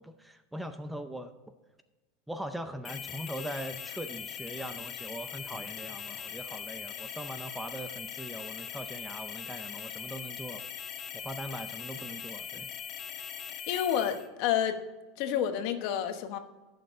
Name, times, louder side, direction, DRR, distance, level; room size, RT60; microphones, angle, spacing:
voice 1, 0.0-1.4 2.3-10.6 11.1-12.7, right 1 dB, 5° right, 8 dB, 0.5 m, -41 dB
sound 1, 2.8-14.3, left 8 dB, 35° left, 1.0 m, -41 dB
voice 2, 13.7-14.8 15.2-16.4, left 9 dB, 55° left, 8 dB, 1.1 m, -29 dB
16.0 x 6.5 x 3.7 m, 1.2 s
supercardioid pair, 150°, 0 cm